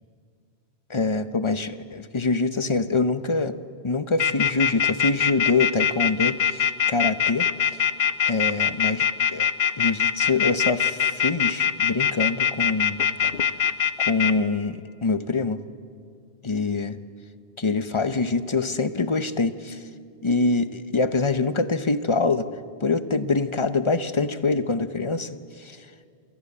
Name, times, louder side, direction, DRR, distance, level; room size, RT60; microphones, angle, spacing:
voice 1, 0.9-3.6 3.8-7.8 8.3-9.5 9.8-13.0 14.0-15.6 16.4-17.0 17.6-19.9 20.2-22.5 22.8-25.9, left 3 dB, 30° left, 11 dB, 0.8 m, -25 dB
sound 1, 4.2-14.3, left 8 dB, 60° left, 1.0 m, -22 dB
27.0 x 18.5 x 8.6 m, 2.2 s
omnidirectional pair, 1.1 m